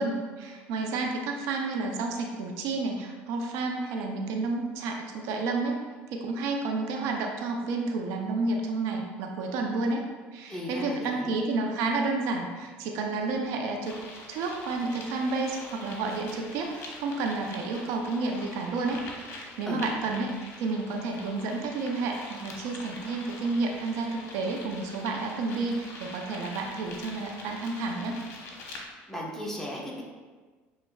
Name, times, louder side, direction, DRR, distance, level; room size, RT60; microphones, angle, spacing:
voice 1, 0.0-5.8 6.1-14.0 14.3-28.2, right 3 dB, 75° right, 2 dB, 0.5 m, -30 dB
voice 2, 10.5-11.3 19.7-19.9 29.1-30.0, equal, 10° left, -3 dB, 1.0 m, -36 dB
sound 1, 13.8-28.8, left 2 dB, 55° left, 1.0 m, -44 dB
6.3 x 3.2 x 2.3 m, 1.4 s
supercardioid pair, 90°, 5 cm